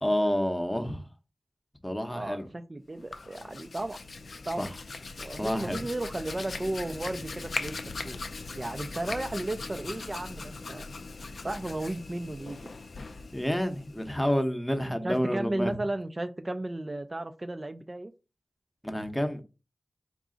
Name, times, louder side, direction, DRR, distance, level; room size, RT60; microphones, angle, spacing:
voice 1, 0.0-1.0 1.8-2.5 4.6-4.7 5.4-5.9 13.3-15.8 18.8-19.4, equal, 10° left, 0.7 m, -29 dB
voice 2, 2.1-4.0 4.5-4.6 5.2-7.7 8.0-8.2 8.6-10.9 11.4-12.6 15.0-18.1, right 2 dB, 35° right, 0.3 m, -34 dB
Hands, 2.9-14.3, left 3 dB, 75° left, 0.3 m, -40 dB
3.9 x 2.4 x 3.7 m
wide cardioid pair, 55°, 0 cm